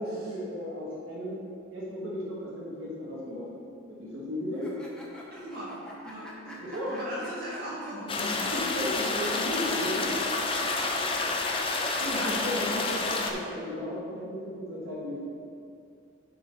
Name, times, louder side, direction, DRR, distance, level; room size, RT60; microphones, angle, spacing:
voice 1, 0.0-1.4 1.7-3.5 3.9-4.7 6.6-6.9 8.5-10.2 12.0-15.2, left 1 dB, 85° right, -7 dB, 2.0 m, -35 dB
sound 1, 4.5-8.2 8.5-8.6 10.0-13.1, equal, 5° left, 0.8 m, -45 dB
voice 2, 5.3-5.8 6.0-6.6 6.9-8.5 8.8-9.1 9.3-9.8 10.4-11.3 11.6-13.1, equal, 50° right, -8 dB, 2.1 m, -40 dB
sound 2, 8.1-13.3, left 3 dB, 25° left, 0.5 m, -29 dB
10.0 x 4.3 x 4.6 m, 2.3 s
head